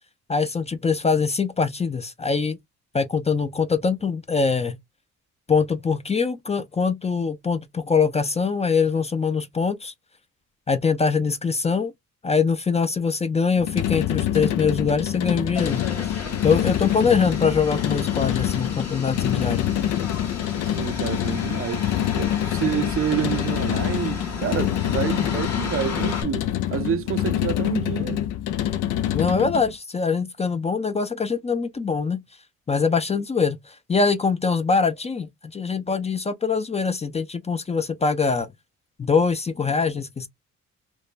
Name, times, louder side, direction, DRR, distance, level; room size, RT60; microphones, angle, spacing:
voice 1, 0.3-2.6 2.9-4.8 5.5-9.9 10.7-11.9 12.2-15.8 16.4-19.6 29.1-32.2 32.7-38.5 39.0-40.3, left 5 dB, 20° left, 0.4 m, -23 dB
sound 1, 13.6-29.7, left 11 dB, 85° left, 0.6 m, -26 dB
sound 2, 15.5-26.2, left 5 dB, 55° left, 1.7 m, -33 dB
voice 2, 20.6-28.2, right 9 dB, 45° right, 0.5 m, -28 dB
3.2 x 2.1 x 2.4 m
cardioid pair, 90°, 30 cm